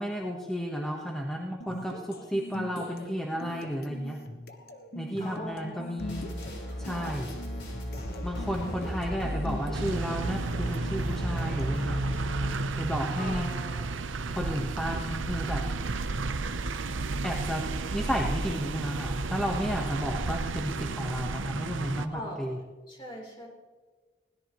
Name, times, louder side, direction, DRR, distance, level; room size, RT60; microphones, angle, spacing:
voice 1, 0.0-4.2 4.9-6.3 6.8-7.3 8.2-12.0 12.8-13.5 14.3-15.6 17.2-17.7 17.9-22.6, equal, 5° left, -1 dB, 1.2 m, -32 dB
sound 1, 1.6-11.8, left 1 dB, 50° left, 1.3 m, -43 dB
voice 2, 5.2-5.9 6.9-7.2 13.1-14.1 22.1-22.6 22.9-23.5, left 1 dB, 25° left, -1 dB, 3.8 m, -41 dB
sound 2, 6.0-12.7, equal, 70° left, 4.6 m, -36 dB
Parkeringen Willys, 9.7-22.1, right 3 dB, 90° right, 0.8 m, -32 dB
21.0 x 17.0 x 3.1 m, 1.3 s
head